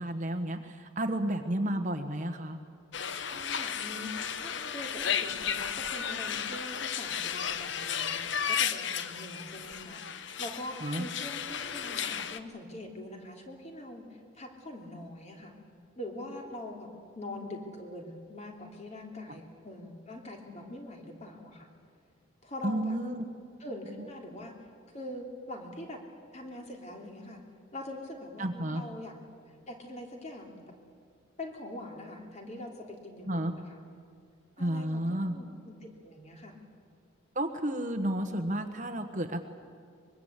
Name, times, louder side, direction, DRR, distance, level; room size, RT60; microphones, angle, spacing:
voice 1, 0.0-2.6 10.8-11.1 22.6-23.3 28.4-28.8 33.3-33.5 34.6-35.4 37.3-39.4, right 1 dB, 35° right, 7 dB, 1.3 m, -31 dB
sound 1, 2.9-12.4, left 8 dB, 55° left, 0.9 m, -34 dB
voice 2, 3.3-15.5 16.0-16.9 17.1-21.7 22.4-23.0 23.6-24.5 24.9-26.0 26.3-27.4 27.7-29.1 29.7-30.6 31.4-33.8 34.6-36.6, left 1 dB, 30° left, 1 dB, 3.2 m, -43 dB
24.0 x 22.0 x 8.2 m, 2.2 s
head